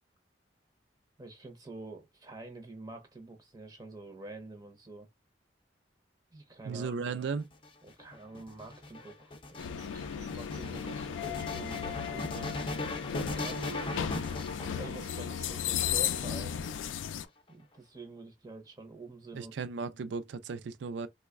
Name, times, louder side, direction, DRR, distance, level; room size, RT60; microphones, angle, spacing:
voice 1, 1.2-5.1 6.3-6.9 7.8-12.6 13.2-13.8 14.6-16.6 17.5-19.5, right 2 dB, 20° right, 0.5 m, -47 dB
voice 2, 6.7-7.5 19.3-21.1, right 5 dB, 75° right, 0.4 m, -35 dB
sound 1, 7.4-15.4 16.2-17.0, left 2 dB, 30° left, 0.4 m, -39 dB
sound 2, 9.6-17.2, left 9 dB, 90° left, 0.3 m, -35 dB
sound 3, 9.6-10.8 11.3-11.4 11.7-11.8 12.2-12.3 12.6-12.7 13.1-16.7, right 4 dB, 55° right, 0.9 m, -50 dB
3.1 x 2.1 x 3.4 m
head